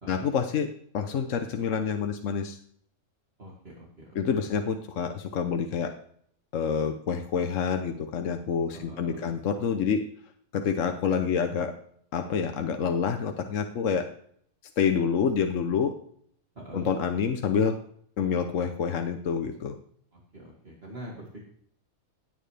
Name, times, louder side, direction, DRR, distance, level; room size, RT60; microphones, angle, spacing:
voice 1, 0.1-2.6 4.1-5.9 6.5-10.1 10.5-11.7 12.1-14.1 14.8-15.9 16.7-17.8 18.2-19.8, left 6 dB, 65° left, 6 dB, 1.1 m, -27 dB
voice 2, 3.4-4.5 8.7-9.3 16.6-16.9 20.1-21.4, right 1 dB, 45° right, -3 dB, 2.5 m, -44 dB
16.5 x 8.9 x 3.4 m, 0.62 s
omnidirectional pair, 1.5 m